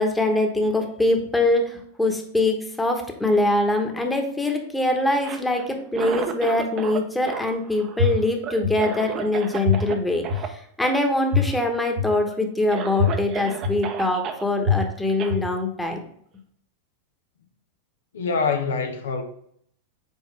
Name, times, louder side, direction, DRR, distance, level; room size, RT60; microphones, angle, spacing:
voice 1, 0.0-16.0, left 2 dB, 5° left, 1.2 m, -23 dB
Cough, 5.1-7.0 7.3-10.0 10.2-10.5 10.8-11.0 11.3-11.8 12.3-12.4 12.7-14.4 15.2-15.4, right 7 dB, 35° right, 0.7 m, -33 dB
sound 1, 8.0-8.1 8.6-8.7 9.7-9.8 10.3-10.4 11.3-11.4 12.0-12.1 13.0-13.1 13.6-13.7 14.6-14.7 15.3-15.4, left 4 dB, 60° right, 1.4 m, -20 dB
voice 2, 18.1-19.2, left 5 dB, 70° left, 0.8 m, -25 dB
6.4 x 4.5 x 3.3 m
figure-of-eight pair, 95°, 0 cm